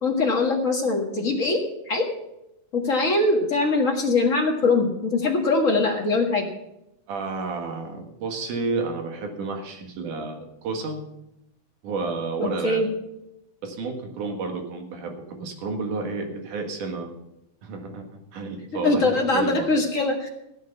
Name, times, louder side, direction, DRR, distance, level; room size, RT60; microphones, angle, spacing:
voice 1, 0.0-1.6 1.9-2.0 2.7-6.5 12.6-12.9 18.8-20.3, left 3 dB, 35° left, 1 dB, 1.4 m, -22 dB
voice 2, 7.1-11.0 11.8-12.8 13.6-17.1 17.6-19.7, right 4 dB, 90° right, 3 dB, 3.3 m, -31 dB
15.5 x 8.5 x 5.7 m, 0.86 s
omnidirectional pair, 3.5 m